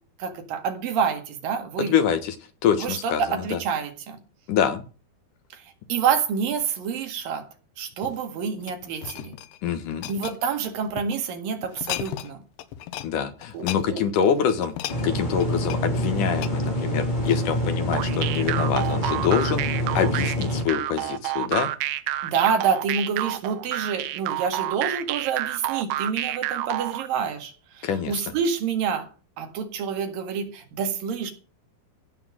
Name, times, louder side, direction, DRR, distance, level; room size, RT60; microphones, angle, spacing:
voice 1, 0.2-1.9 2.8-4.2 5.5-5.6 5.9-7.5 7.8-9.4 10.1-12.4 13.5-14.0 22.2-29.1 29.4-31.3, right 6 dB, 65° right, 3.4 m, -27 dB
voice 2, 1.8-2.4 2.6-3.2 3.5-3.6 4.5-4.8 9.6-10.1 13.0-14.7 15.0-19.6 19.9-21.7 27.8-28.2, left 8 dB, 65° left, 2.4 m, -25 dB
sound 1, 7.9-11.2 11.6-12.3 12.6-13.1 13.4-17.7 18.2-18.4, left 13 dB, 90° left, 2.9 m, -36 dB
sound 2, 14.9-20.6, equal, 10° left, 3.0 m, -26 dB
sound 3, 17.9-27.1, right 14 dB, 80° right, 2.7 m, -29 dB
16.0 x 5.8 x 7.4 m
omnidirectional pair, 4.6 m